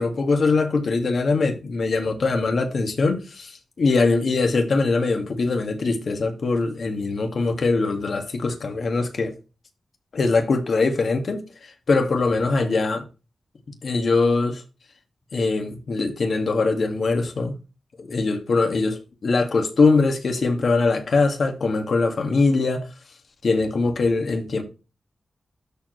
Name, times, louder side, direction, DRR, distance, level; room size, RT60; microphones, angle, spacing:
voice 1, 0.0-9.3 10.1-13.0 13.8-14.6 15.3-17.5 18.0-22.9 23.4-24.6, left 3 dB, 60° left, 2.0 m, -22 dB
13.0 x 4.5 x 3.3 m
wide cardioid pair, 120°, 0 cm